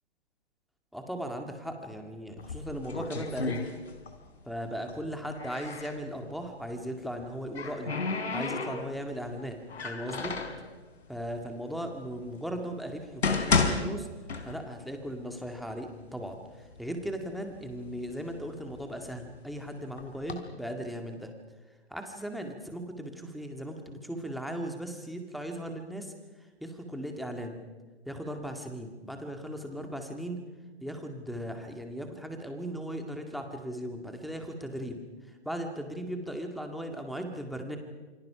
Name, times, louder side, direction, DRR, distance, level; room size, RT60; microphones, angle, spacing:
voice 1, 0.9-3.7 4.5-8.0 8.3-10.3 11.1-14.1 14.4-21.3 21.9-26.1 26.6-27.6 28.1-30.4 30.8-37.8, equal, ahead, 4 dB, 2.1 m, -37 dB
sound 1, 2.4-4.3 4.6-6.0 7.1-9.1 9.7-10.6 11.4-11.5 12.2-12.3 12.9-14.9 15.2-15.3 16.0-16.1 16.5-17.1 17.7-19.4 20.0-20.3, left 4 dB, 70° left, 4.1 m, -32 dB
28.5 x 24.5 x 5.8 m, 1.3 s
figure-of-eight pair, 130°, 34 cm